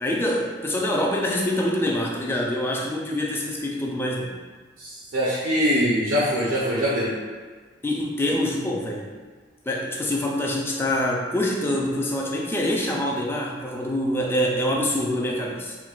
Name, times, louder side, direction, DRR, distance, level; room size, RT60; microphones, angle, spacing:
voice 1, 0.0-4.3 7.8-9.1 9.7-15.8, left 1 dB, 10° left, -1 dB, 0.3 m, -25 dB
voice 2, 4.8-7.2, equal, 80° right, -5 dB, 0.5 m, -23 dB
4.3 x 2.1 x 2.3 m, 1.5 s
head